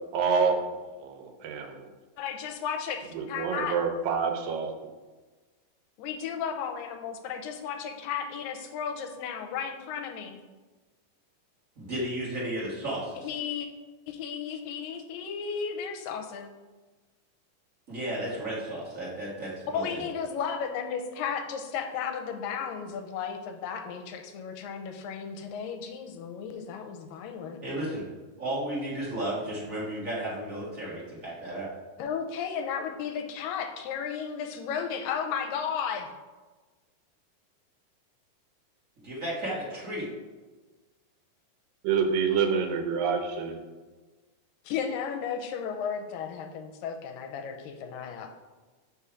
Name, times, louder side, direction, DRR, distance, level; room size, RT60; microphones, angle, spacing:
voice 1, 0.1-1.9 3.1-4.7 41.8-43.6, right 5 dB, 80° right, 4 dB, 2.5 m, -27 dB
voice 2, 2.2-3.8 6.0-10.4 13.2-13.7 14.1-16.5 19.7-27.6 32.0-36.1 44.7-48.4, left 7 dB, 85° left, 5 dB, 2.3 m, -34 dB
voice 3, 11.8-13.0 17.9-20.0 27.6-28.0 28.4-31.7 39.1-40.1, right 1 dB, 30° right, -7 dB, 1.9 m, -33 dB
5.7 x 5.5 x 4.8 m, 1.3 s
omnidirectional pair, 4.0 m